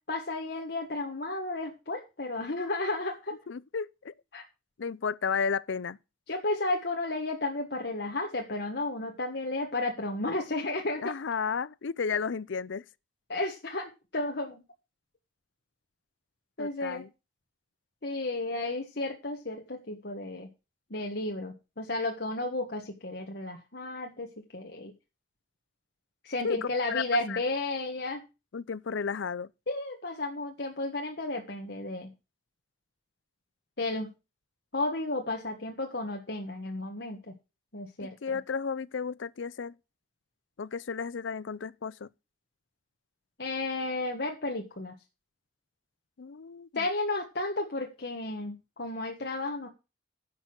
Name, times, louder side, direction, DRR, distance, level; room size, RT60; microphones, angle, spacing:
voice 1, 0.1-3.4 4.3-4.4 6.3-11.1 13.3-14.6 16.6-17.0 18.0-20.5 20.9-24.9 26.2-28.2 29.7-32.1 33.8-34.1 34.7-37.3 37.7-38.2 43.4-44.9 46.7-49.7, left 2 dB, 55° left, 1.4 m, -33 dB
voice 2, 3.5-4.1 4.8-6.0 11.0-12.8 16.6-17.1 26.4-26.6 26.9-27.4 28.5-29.5 38.0-39.8 40.6-42.1 46.2-46.9, left 5 dB, 75° left, 0.5 m, -33 dB
10.5 x 6.8 x 6.2 m
head